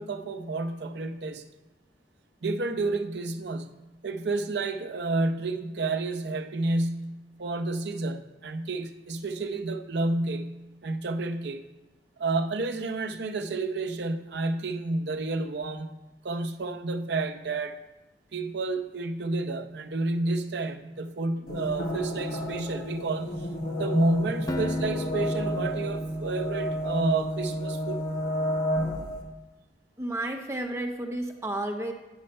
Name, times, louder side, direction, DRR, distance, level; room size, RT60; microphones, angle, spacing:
voice 1, 0.0-1.4 2.4-11.6 12.2-16.0 16.2-17.8 18.3-23.5 23.8-28.1, right 2 dB, 65° right, 9 dB, 0.6 m, -30 dB
sound 1, 21.5-29.2, equal, 50° left, 1.3 m, -31 dB
Acoustic guitar, 24.5-27.5, left 1 dB, 20° left, 0.3 m, -38 dB
voice 2, 30.0-31.9, right 1 dB, 15° right, 3 dB, 0.7 m, -32 dB
9.4 x 5.5 x 5.4 m, 1.1 s
head